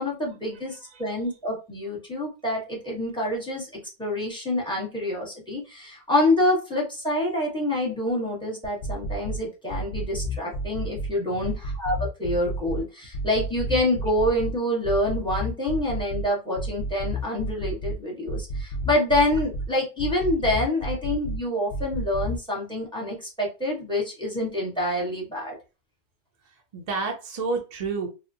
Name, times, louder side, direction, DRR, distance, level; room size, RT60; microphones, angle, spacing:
voice 1, 0.0-3.7 4.0-25.6, left 1 dB, 5° left, -3 dB, 0.8 m, -27 dB
voice 2, 0.7-1.0 11.3-11.6 26.7-28.1, right 4 dB, 50° right, 2 dB, 0.5 m, -30 dB
sound 1, 8.6-9.4 9.7-11.1 11.4-12.8 13.1-14.5 14.8-16.2 16.6-17.9 18.3-19.7 20.0-21.4 21.7-22.4, right 1 dB, 50° left, 0.7 m, -30 dB
2.8 x 2.1 x 2.6 m, 0.30 s
omnidirectional pair, 1.3 m